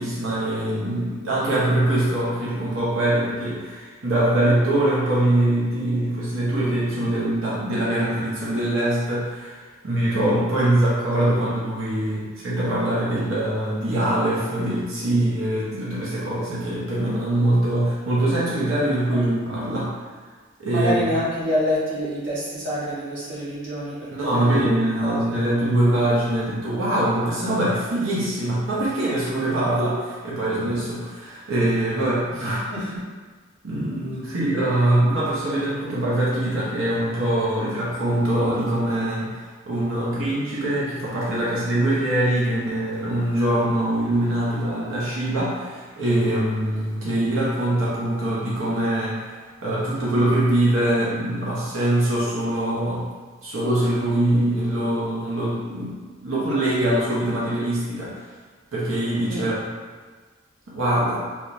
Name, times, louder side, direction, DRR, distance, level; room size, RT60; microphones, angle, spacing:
voice 1, 0.0-19.9 20.6-21.0 24.1-32.9 33.6-39.4 39.7-53.1 53.4-58.2 58.7-59.7 60.7-61.2, right 1 dB, 75° right, -7 dB, 0.9 m, -23 dB
voice 2, 20.7-24.0 24.3-24.6 25.0-25.4 32.7-32.8 59.3-59.5, equal, 60° right, -8 dB, 1.2 m, -26 dB
3.5 x 3.0 x 2.6 m, 1.5 s
head